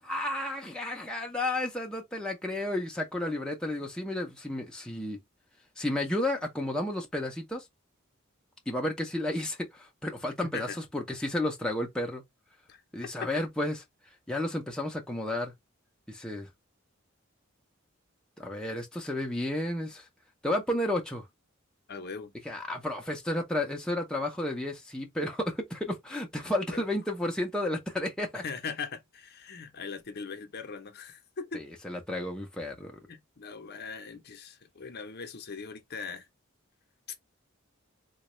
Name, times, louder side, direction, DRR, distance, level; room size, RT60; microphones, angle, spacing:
voice 1, 0.0-5.2 5.8-7.7 8.7-10.7 10.9-12.2 12.9-13.8 14.3-15.5 16.1-16.5 18.4-20.1 20.4-21.3 22.4-28.4 31.5-33.0, left 1 dB, 5° left, 0.6 m, -32 dB
voice 2, 21.9-22.3 26.7-26.8 28.3-31.6 33.1-36.3, left 5 dB, 50° left, 0.7 m, -40 dB
3.8 x 2.2 x 3.0 m
head